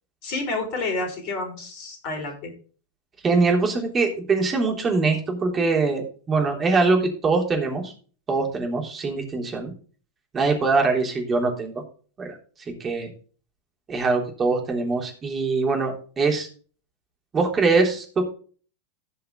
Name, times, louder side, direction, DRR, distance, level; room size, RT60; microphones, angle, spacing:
voice 1, 0.2-2.5, left 3 dB, 45° left, 3 dB, 5.3 m, -29 dB
voice 2, 3.2-7.9 8.3-9.7 10.3-11.8 12.2-12.4 12.7-13.1 13.9-16.5 17.3-18.2, right 3 dB, 20° right, 1 dB, 3.4 m, -23 dB
16.5 x 5.7 x 3.9 m, 0.40 s
figure-of-eight pair, 90°, 0 cm